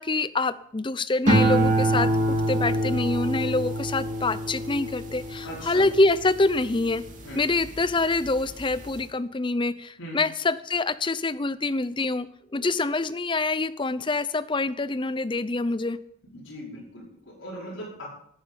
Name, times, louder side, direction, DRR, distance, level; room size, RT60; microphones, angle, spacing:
voice 1, 0.0-7.0 7.3-12.3 12.5-16.0, left 3 dB, 25° left, 14 dB, 0.5 m, -26 dB
sound 1, 1.3-7.8 8.3-8.7, right 1 dB, 40° right, 2.5 m, -26 dB
voice 2, 5.4-5.8 7.2-7.4 10.0-10.2 16.3-18.1, equal, 70° left, -4 dB, 5.1 m, -39 dB
11.5 x 9.9 x 7.0 m, 0.70 s
head